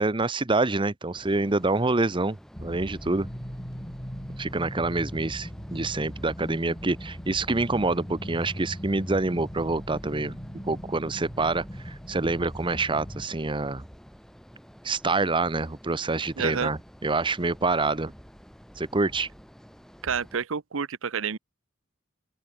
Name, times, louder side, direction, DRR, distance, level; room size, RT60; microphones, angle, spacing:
voice 1, 0.0-3.3 4.4-10.4 10.7-13.8 14.8-18.1 18.8-19.3, right 3 dB, 25° right, 0.9 m, -26 dB
sound 1, 1.1-20.5, equal, ahead, 6.0 m, -50 dB
sound 2, 2.5-13.3, equal, 20° left, 7.6 m, -39 dB
voice 2, 16.4-16.7 20.0-21.4, right 6 dB, 65° right, 0.8 m, -29 dB
open air
head